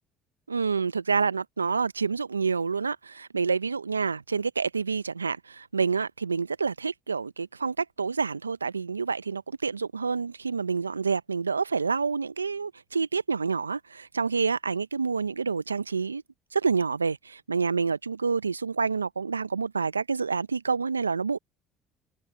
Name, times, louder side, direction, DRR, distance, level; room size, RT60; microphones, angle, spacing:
voice 1, 0.5-16.2 16.5-21.4, right 5 dB, 90° right, 0.5 m, -28 dB
figure-of-eight pair, 55°, 0 cm